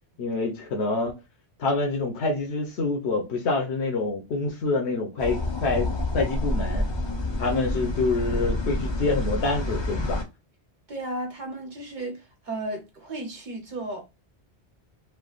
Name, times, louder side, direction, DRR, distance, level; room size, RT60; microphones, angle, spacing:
voice 1, 0.2-1.1 1.6-6.9 7.4-10.2, left 3 dB, 75° left, 1.0 m, -26 dB
sound 1, 5.2-10.2, left 2 dB, 30° left, 0.5 m, -28 dB
voice 2, 10.9-14.0, right 1 dB, 45° right, 1.1 m, -34 dB
3.2 x 2.2 x 2.3 m
omnidirectional pair, 1.1 m